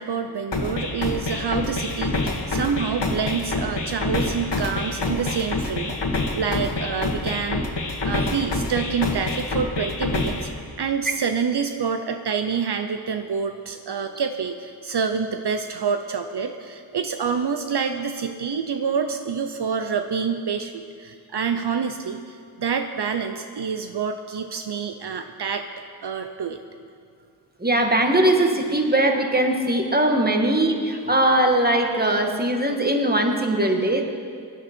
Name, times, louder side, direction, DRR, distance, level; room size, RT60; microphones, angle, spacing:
voice 1, 0.0-7.7 8.0-25.7 26.0-26.6 30.6-30.7, right 6 dB, 70° right, 7 dB, 0.7 m, -27 dB
sound 1, 0.5-10.5, left 3 dB, 80° left, 1.6 m, -27 dB
voice 2, 27.6-34.0, right 1 dB, 20° right, 3 dB, 1.7 m, -20 dB
17.5 x 12.0 x 4.4 m, 2.2 s
wide cardioid pair, 55°, 41 cm